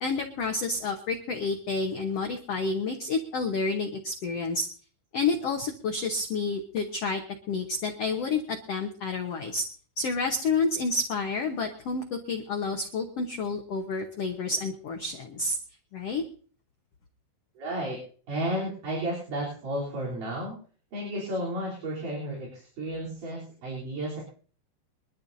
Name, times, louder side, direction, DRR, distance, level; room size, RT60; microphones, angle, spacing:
voice 1, 0.0-4.7 5.1-7.2 7.5-9.6 10.0-15.6 15.9-16.2, left 3 dB, 65° left, 4 dB, 1.5 m, -29 dB
voice 2, 17.6-18.0 18.3-20.6 20.9-24.2, right 1 dB, 55° right, -4 dB, 5.1 m, -32 dB
25.0 x 12.0 x 2.7 m, 0.43 s
omnidirectional pair, 4.5 m